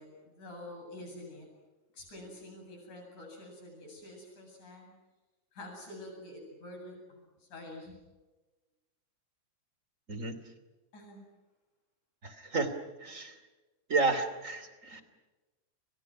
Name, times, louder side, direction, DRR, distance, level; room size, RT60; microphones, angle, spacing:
voice 1, 0.0-1.5 1.9-4.9 5.5-8.0 10.9-11.2, left 1 dB, 80° left, 1 dB, 9.7 m, -47 dB
voice 2, 12.2-12.7 13.0-13.4 13.9-15.0, right 3 dB, 25° right, 10 dB, 2.9 m, -31 dB
29.0 x 28.5 x 6.2 m, 1.2 s
omnidirectional pair, 3.5 m